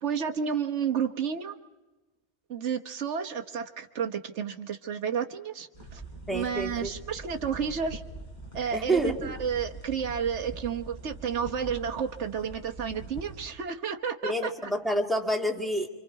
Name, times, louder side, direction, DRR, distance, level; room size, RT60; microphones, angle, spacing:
voice 1, 0.0-1.6 2.5-6.0 6.3-8.0 8.5-14.5, right 7 dB, 90° right, 4 dB, 1.5 m, -31 dB
sound 1, 5.7-13.5, right 2 dB, 40° left, 5.6 m, -43 dB
voice 2, 6.3-6.9 8.7-9.3 14.2-15.9, right 1 dB, ahead, 1 dB, 2.2 m, -28 dB
27.5 x 26.0 x 4.7 m, 1.1 s
omnidirectional pair, 1.2 m